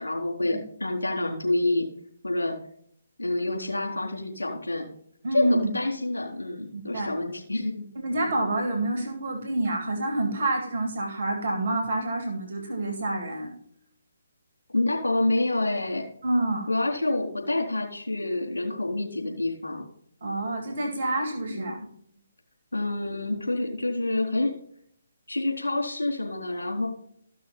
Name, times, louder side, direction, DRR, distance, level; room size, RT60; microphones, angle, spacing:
voice 1, 0.0-1.9 2.2-2.6 3.2-4.9 5.3-7.9 14.7-16.0 16.7-19.8 21.5-21.7 22.7-24.6 25.3-26.9, left 2 dB, 75° left, 0 dB, 3.7 m, -27 dB
voice 2, 5.2-5.7 6.7-7.1 8.0-13.5 16.2-16.7 20.2-21.8, right 2 dB, 55° right, 3 dB, 2.6 m, -27 dB
14.5 x 6.2 x 4.4 m, 0.65 s
figure-of-eight pair, 140°, 0 cm